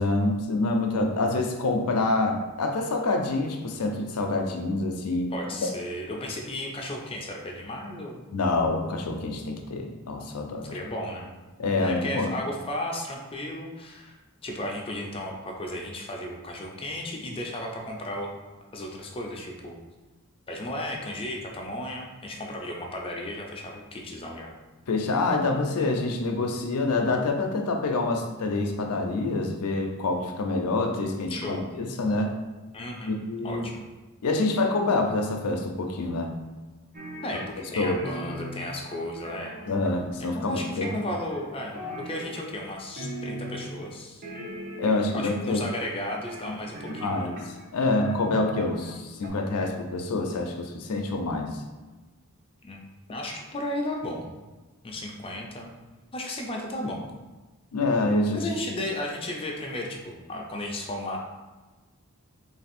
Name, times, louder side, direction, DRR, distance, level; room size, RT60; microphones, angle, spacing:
voice 1, 0.0-5.3 8.3-10.8 11.6-12.3 24.9-32.3 33.1-33.7 34.2-36.3 37.8-38.0 39.7-40.9 44.8-45.7 47.0-47.4 47.7-51.6 57.7-58.5, left 2 dB, 90° left, 4 dB, 0.5 m, -26 dB
voice 2, 5.3-8.2 10.6-11.3 11.8-14.2 14.4-18.3 18.7-19.8 20.5-24.5 31.3-31.7 32.7-33.2 33.4-33.8 37.2-39.6 40.2-44.2 45.1-47.3 52.6-54.3 54.8-55.7 56.1-57.0 58.3-61.2, left 1 dB, 25° left, 0 dB, 0.5 m, -34 dB
sound 1, 36.9-37.7 38.0-40.2 40.8-41.5 41.7-42.7 43.0-43.9 44.2-45.2 45.8-47.6 48.0-48.9 49.2-49.3, equal, 45° right, 0.7 m, -38 dB
3.3 x 2.6 x 4.2 m, 1.2 s
head